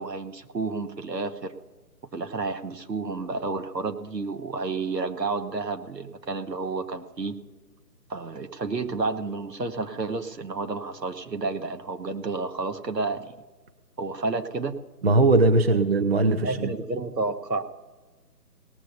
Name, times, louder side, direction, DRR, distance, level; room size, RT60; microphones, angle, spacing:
voice 1, 0.0-1.5 2.1-7.4 8.1-13.3 14.0-14.8 16.4-17.6, right 3 dB, 80° right, 7 dB, 1.3 m, -30 dB
voice 2, 15.0-16.7, right 2 dB, 40° right, 10 dB, 0.6 m, -20 dB
18.5 x 6.8 x 5.4 m, 1.2 s
figure-of-eight pair, 150°, 49 cm